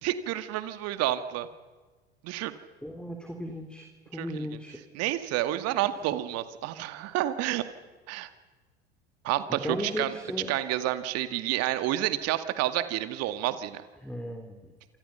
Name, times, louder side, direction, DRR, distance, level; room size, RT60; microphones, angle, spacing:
voice 1, 0.0-1.5 2.2-2.5 4.2-4.3 4.9-7.6 8.1-8.3 9.2-10.1 10.5-13.8, right 14 dB, 50° right, 10 dB, 2.1 m, -29 dB
voice 2, 2.8-4.8 9.5-10.5 14.0-14.7, equal, 5° left, 3 dB, 3.6 m, -36 dB
28.0 x 27.5 x 5.7 m, 1.3 s
figure-of-eight pair, 75°, 31 cm